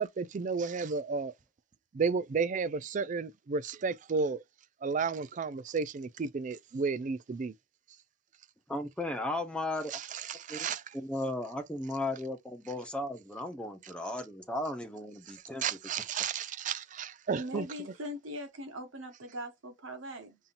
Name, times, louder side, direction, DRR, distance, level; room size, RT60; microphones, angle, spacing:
voice 1, 0.0-1.3 1.9-4.4 4.8-7.5 9.9-10.8 15.6-17.7, right 5 dB, 40° right, 0.3 m, -32 dB
voice 2, 8.7-9.9 10.5-10.7 10.9-15.6, left 1 dB, 5° left, 0.9 m, -35 dB
voice 3, 17.4-20.4, equal, 85° right, 1.4 m, -41 dB
5.5 x 2.8 x 2.5 m
head